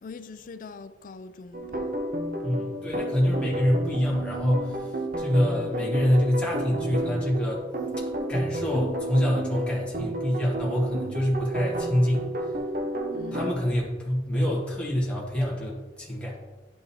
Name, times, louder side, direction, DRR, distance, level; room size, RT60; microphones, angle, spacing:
voice 1, 0.0-2.0 13.1-13.5, left 4 dB, 50° left, 0.4 m, -42 dB
sound 1, 1.5-13.5, right 1 dB, 55° right, 0.7 m, -31 dB
voice 2, 2.4-7.6 8.3-12.3 13.3-16.4, equal, 5° left, 1.8 m, -26 dB
11.0 x 5.3 x 2.8 m
head